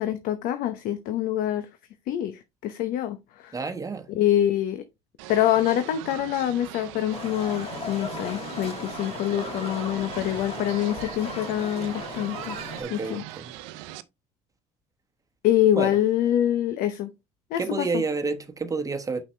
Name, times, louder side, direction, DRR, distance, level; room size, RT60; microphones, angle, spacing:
voice 1, 0.0-1.7 2.1-3.6 4.1-4.8 5.3-12.6 12.9-13.2 15.4-17.1 17.5-18.0, left 11 dB, 70° left, 0.8 m, -25 dB
voice 2, 3.5-4.1 12.8-13.5 15.8-16.0 17.6-19.2, right 4 dB, 20° right, 1.1 m, -29 dB
sound 1, 5.2-14.0, right 15 dB, 90° right, 0.6 m, -40 dB
Livestock farm animals working animals, 7.1-12.8, left 2 dB, 45° left, 3.2 m, -37 dB
6.4 x 5.8 x 3.3 m
supercardioid pair, 85°, 15 cm